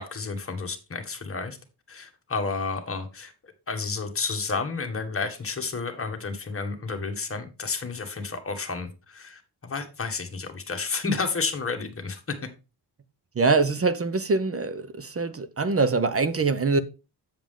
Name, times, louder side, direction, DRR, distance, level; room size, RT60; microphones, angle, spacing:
voice 1, 0.0-1.6 1.9-12.5, left 4 dB, 30° left, 1.3 m, -31 dB
voice 2, 13.4-16.8, right 4 dB, 35° right, 0.5 m, -24 dB
7.3 x 7.2 x 3.6 m
wide cardioid pair, 155°, 42 cm